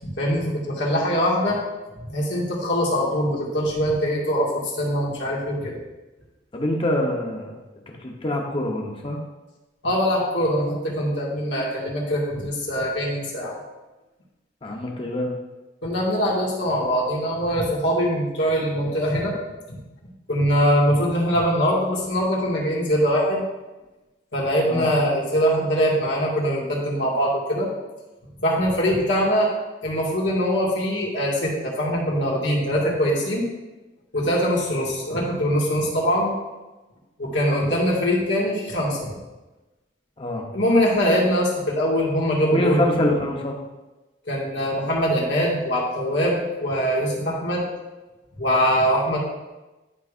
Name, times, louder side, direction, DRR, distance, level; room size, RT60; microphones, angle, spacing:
voice 1, 0.0-1.6 2.1-5.8 9.8-13.6 15.8-19.4 20.3-23.4 24.3-27.7 28.4-29.5 29.8-33.5 34.1-36.3 37.2-39.2 40.5-42.8 44.3-47.6 48.4-49.2, equal, 80° left, -4 dB, 1.9 m, -22 dB
voice 2, 6.5-7.6 7.9-9.2 14.6-15.3 24.7-24.9 40.2-40.4 42.5-43.6, left 1 dB, 30° left, 0 dB, 1.0 m, -25 dB
11.0 x 4.9 x 2.5 m, 1.1 s
head